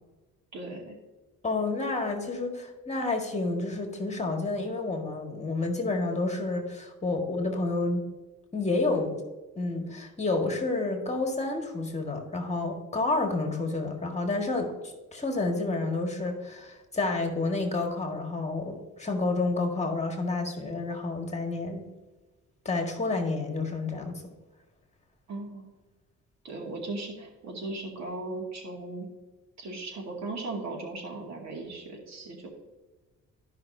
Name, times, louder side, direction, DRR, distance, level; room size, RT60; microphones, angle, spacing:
voice 1, 0.5-1.0 25.3-25.7 26.4-29.1 29.6-32.5, right 2 dB, 65° right, 0 dB, 2.4 m, -37 dB
voice 2, 1.4-8.0 8.5-9.2 9.6-21.8 22.7-24.1, left 3 dB, 20° left, 3 dB, 1.8 m, -29 dB
13.5 x 5.6 x 2.7 m, 1.2 s
cardioid pair, 90°, 30 cm